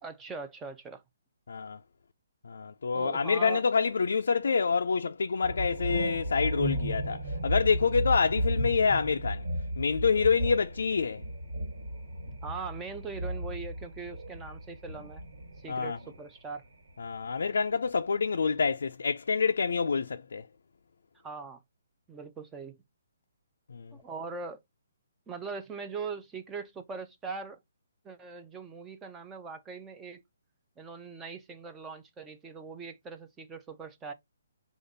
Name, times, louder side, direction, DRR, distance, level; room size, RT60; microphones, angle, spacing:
voice 1, 0.0-1.0 2.9-3.6 12.4-15.2 15.6-16.6 21.2-21.6 22.1-22.8 23.9-24.6 25.3-27.6 28.0-30.2 30.8-34.1, right 5 dB, 10° right, 0.4 m, -41 dB
voice 2, 1.5-1.8 2.4-9.4 9.8-11.2 15.7-16.0 17.0-20.4 23.7-24.0, left 5 dB, 70° left, 0.3 m, -27 dB
sound 1, 5.4-16.2 16.5-17.8, right 1 dB, 70° right, 1.7 m, -34 dB
5.0 x 2.4 x 3.9 m
hypercardioid pair, 175°, 0 cm